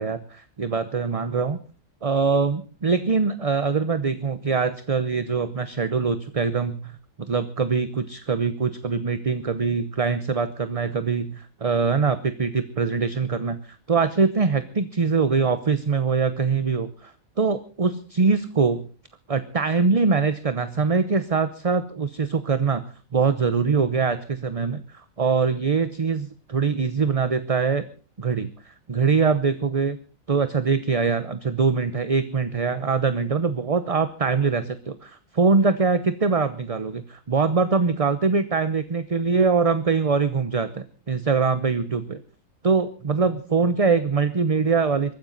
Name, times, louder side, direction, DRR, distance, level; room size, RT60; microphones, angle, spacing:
voice 1, 0.0-1.6 2.0-17.1 17.4-18.9 19.3-22.9 23.1-27.9 28.2-30.0 30.3-42.2 42.6-45.1, right 5 dB, 30° right, 12 dB, 0.8 m, -23 dB
22.5 x 14.5 x 4.0 m, 0.38 s
omnidirectional pair, 1.4 m